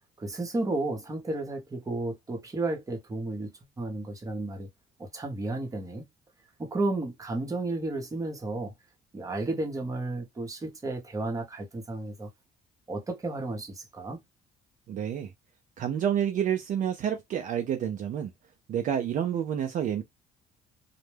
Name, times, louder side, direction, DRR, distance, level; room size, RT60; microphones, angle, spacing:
voice 1, 0.2-4.7 5.0-6.0 6.6-8.7 9.1-12.3 12.9-14.2, right 2 dB, 20° right, 0.7 m, -33 dB
voice 2, 14.9-15.3 15.8-18.3 18.7-20.0, right 9 dB, 50° right, 0.4 m, -29 dB
2.1 x 2.0 x 3.2 m
cardioid pair, 110°, 17 cm